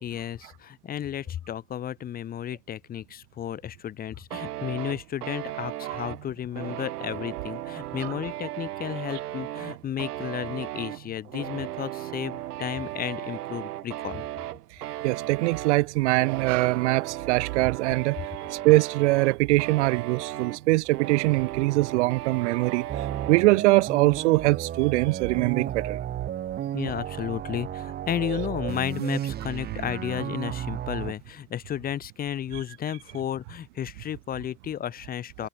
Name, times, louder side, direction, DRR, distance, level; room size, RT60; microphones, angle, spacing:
voice 1, 0.0-14.2 26.7-35.5, left 10 dB, 20° left, 1.3 m, -33 dB
sound 1, 4.3-23.5, right 14 dB, 70° right, 5.1 m, -36 dB
voice 2, 15.0-18.2 18.5-26.0 28.2-28.4, right 22 dB, 45° right, 0.8 m, -23 dB
sound 2, 22.9-31.1, right 11 dB, 20° right, 1.5 m, -33 dB
supercardioid pair, 140°, 48 cm